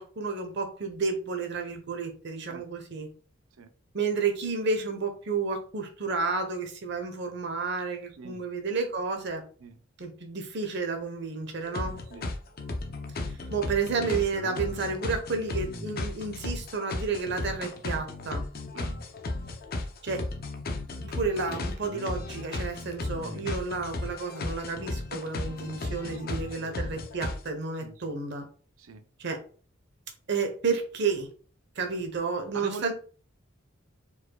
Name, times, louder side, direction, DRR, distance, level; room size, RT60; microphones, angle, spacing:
voice 1, 0.0-3.1 3.9-9.4 10.0-12.0 13.5-18.4 20.0-20.2 21.0-28.4 29.2-29.4 30.3-31.3 31.8-32.9, right 4 dB, 55° right, 5 dB, 1.0 m, -31 dB
voice 2, 8.1-8.5 9.6-9.8 12.1-12.3 13.6-13.7 18.7-19.0 26.1-26.7 27.8-28.1 28.8-29.0 32.5-32.9, right 4 dB, 80° right, 10 dB, 0.6 m, -43 dB
sound 1, 11.6-27.5, left 2 dB, 50° left, 0.7 m, -35 dB
4.9 x 4.2 x 2.3 m, 0.41 s
head